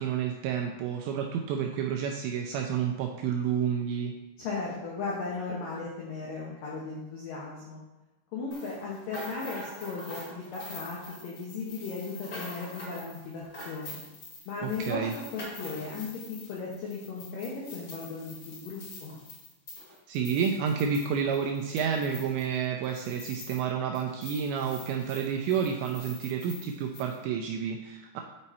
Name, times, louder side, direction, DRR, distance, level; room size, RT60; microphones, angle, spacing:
voice 1, 0.0-4.1 14.6-15.1 20.1-28.2, right 7 dB, 85° right, 2 dB, 2.6 m, -30 dB
voice 2, 4.4-7.8 8.3-14.0 14.5-19.1, left 4 dB, 85° left, -4 dB, 1.9 m, -36 dB
sound 1, 8.5-23.7 23.9-27.2, left 2 dB, 55° left, 1.3 m, -45 dB
8.6 x 4.4 x 4.2 m, 1.1 s
omnidirectional pair, 5.6 m